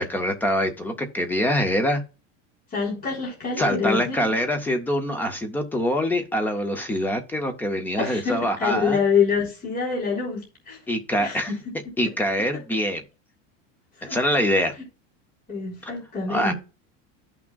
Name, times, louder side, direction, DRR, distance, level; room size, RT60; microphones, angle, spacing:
voice 1, 0.0-2.0 3.6-9.0 10.9-11.5 12.0-13.0 14.1-14.7 15.8-15.9 16.3-16.5, equal, 5° left, 0.3 m, -24 dB
voice 2, 2.7-4.3 8.0-10.8 11.2-11.6 14.1-14.2 15.5-16.5, left 5 dB, 20° left, 3.6 m, -26 dB
14.0 x 6.0 x 2.2 m
cardioid pair, 180°, 39 cm